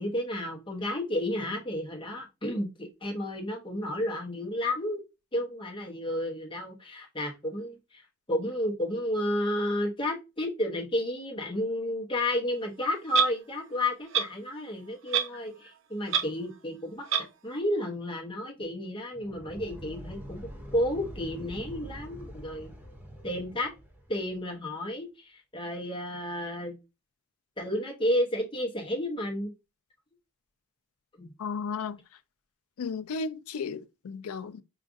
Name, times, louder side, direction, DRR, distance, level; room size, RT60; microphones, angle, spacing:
voice 1, 0.0-5.0 5.3-20.4 20.7-22.7 23.2-23.7 24.1-26.8 27.6-29.5 31.2-31.3, left 1 dB, 20° left, 0.9 m, -31 dB
Clock, 13.1-13.3 14.1-14.3 15.1-15.4 15.7-15.8 16.1-16.3 17.1-17.3, right 9 dB, 60° right, 0.5 m, -25 dB
sound 1, 19.1-24.3, equal, 10° right, 0.6 m, -44 dB
voice 2, 31.4-32.0 32.8-34.6, left 5 dB, 80° left, 0.4 m, -34 dB
4.8 x 2.4 x 2.5 m
head